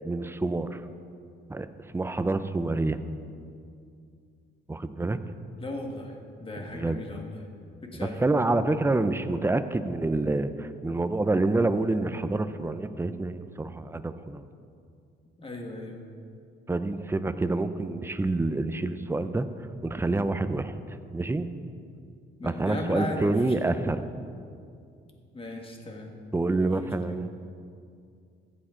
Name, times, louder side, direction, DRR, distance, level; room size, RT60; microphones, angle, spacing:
voice 1, 0.0-0.8 1.5-1.7 1.9-3.0 4.7-5.2 6.7-7.0 7.9-14.4 16.7-19.5 19.8-20.7 21.1-21.5 22.4-24.1 26.3-27.3, right 2 dB, 10° right, 11 dB, 0.5 m, -27 dB
voice 2, 5.6-7.5 7.8-8.6 15.4-16.1 22.4-23.7 25.3-26.1 26.4-26.7, left 1 dB, 25° left, 1 dB, 1.8 m, -37 dB
14.5 x 8.6 x 3.8 m, 2.4 s
cardioid pair, 90°, 20 cm